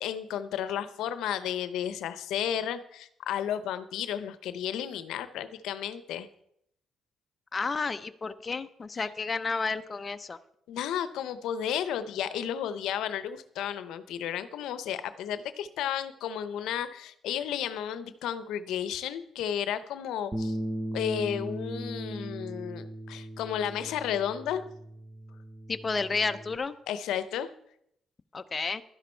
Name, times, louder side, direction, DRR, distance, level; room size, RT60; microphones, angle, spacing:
voice 1, 0.0-6.3 9.0-9.1 10.7-20.6 20.9-24.6 26.9-27.5, left 9 dB, 85° left, 13 dB, 0.7 m, -33 dB
voice 2, 7.5-10.4 25.7-26.7 28.3-28.8, left 4 dB, 30° left, 9 dB, 0.6 m, -31 dB
Bass guitar, 20.3-26.6, right 1 dB, 15° right, 1.0 m, -38 dB
12.0 x 11.0 x 4.5 m, 0.73 s
cardioid pair, 90°, 0 cm